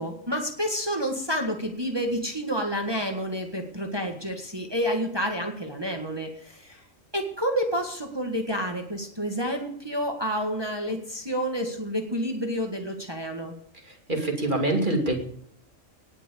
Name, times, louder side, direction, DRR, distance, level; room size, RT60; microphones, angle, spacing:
voice 1, 0.0-6.8 7.1-13.5, equal, 20° right, 3 dB, 1.7 m, -29 dB
voice 2, 13.8-15.2, right 1 dB, 40° right, 2 dB, 2.9 m, -25 dB
18.5 x 6.2 x 8.4 m, 0.67 s
omnidirectional pair, 1.3 m